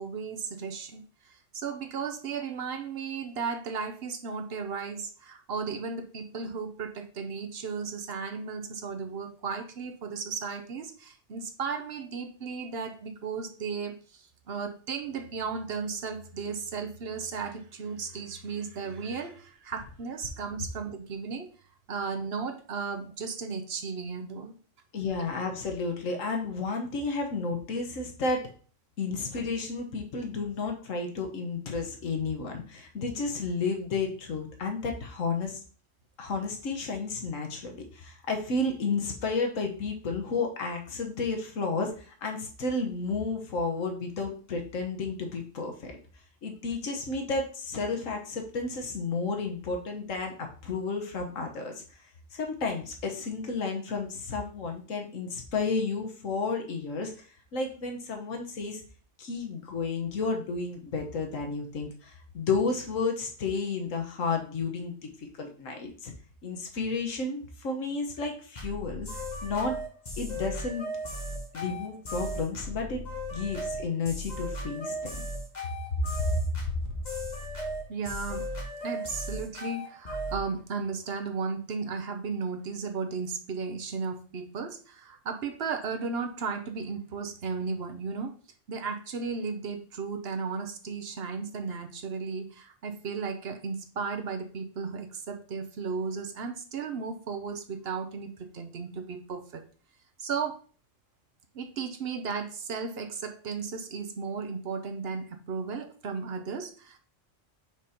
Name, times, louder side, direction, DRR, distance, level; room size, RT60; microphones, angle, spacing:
voice 1, 0.0-21.5 21.9-24.6 77.9-78.5 78.8-88.3 88.7-99.6 100.2-100.6 101.5-107.0, right 5 dB, 55° right, 7 dB, 1.1 m, -35 dB
voice 2, 24.9-28.5 29.0-35.6 36.2-45.9 46.4-51.8 52.3-58.8 59.2-66.1 66.4-69.8 70.2-70.8 71.5-73.0 73.3-75.0 75.9-76.8, left 3 dB, 90° left, 2 dB, 1.5 m, -32 dB
sound 1, 68.5-80.4, equal, 35° left, 1.4 m, -36 dB
5.2 x 4.2 x 5.1 m, 0.41 s
omnidirectional pair, 1.3 m